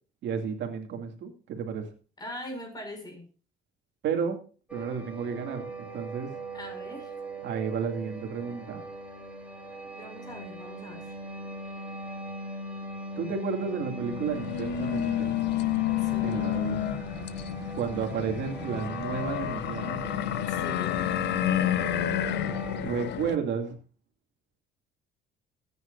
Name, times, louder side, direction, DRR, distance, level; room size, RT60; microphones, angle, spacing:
voice 1, 0.2-1.9 4.0-4.4 4.7-6.3 7.4-8.9 13.2-15.4 16.2-16.9 17.7-20.1 22.8-23.8, right 6 dB, 65° right, 4 dB, 2.6 m, -32 dB
voice 2, 2.2-3.3 6.5-7.1 9.9-11.1 16.0-16.5 20.5-21.1, left 1 dB, 20° left, 3 dB, 6.2 m, -42 dB
sound 1, 4.7-22.8, equal, 5° right, 3.8 m, -39 dB
sound 2, 14.0-23.4, left 12 dB, 65° left, 0.7 m, -30 dB
20.0 x 9.6 x 2.6 m, 0.36 s
cardioid pair, 130°, 20 cm